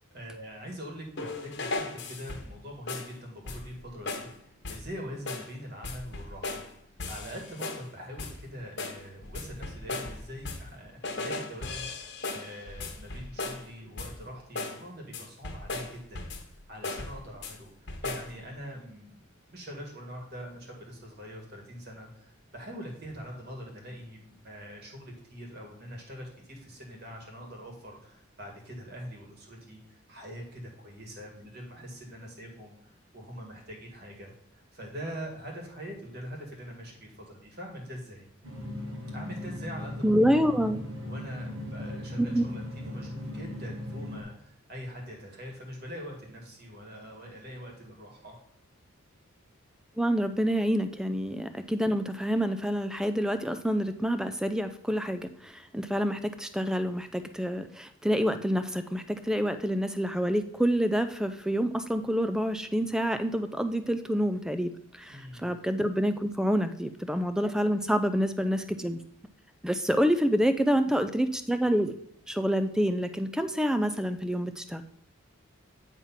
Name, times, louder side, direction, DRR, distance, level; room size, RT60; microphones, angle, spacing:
voice 1, 0.1-6.6 7.1-19.2 19.5-38.3 39.1-40.0 41.0-48.4 65.1-65.5, equal, 50° right, 0 dB, 1.9 m, -43 dB
sound 1, 1.2-2.6 2.9-3.1 3.5-3.8 4.1-4.3 4.6-4.9 5.3-5.5 5.8-6.7 7.0-7.9 8.2-8.5 8.8-10.8 11.0-13.7 14.0-14.3 14.5-14.8 15.1-16.5 16.8-17.6 17.9-18.3, left 3 dB, 55° left, 1.1 m, -37 dB
sound 2, 38.4-44.2, left 1 dB, 90° right, 1.6 m, -38 dB
voice 2, 40.0-40.9 42.2-42.4 50.0-64.7 65.0-69.0 69.6-71.9 72.3-74.8, equal, 5° right, 10 dB, 0.3 m, -27 dB
8.6 x 3.5 x 5.7 m, 0.73 s
head